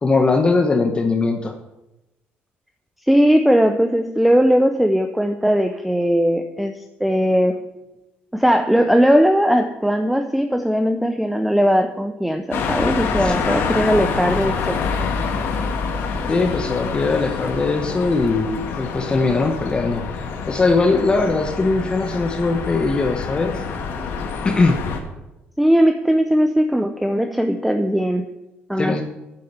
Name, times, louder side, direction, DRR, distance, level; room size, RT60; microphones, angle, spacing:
voice 1, 0.0-1.5 13.2-13.3 16.3-23.6 24.4-24.8 28.8-29.0, left 3 dB, 25° left, 5 dB, 1.0 m, -20 dB
voice 2, 3.1-6.7 7.0-7.6 8.3-14.8 25.6-28.3 28.7-29.0, equal, ahead, 7 dB, 0.6 m, -18 dB
sound 1, 12.5-25.0, left 5 dB, 70° left, 1.7 m, -26 dB
8.7 x 7.6 x 8.1 m, 0.97 s
cardioid pair, 130°, 4 cm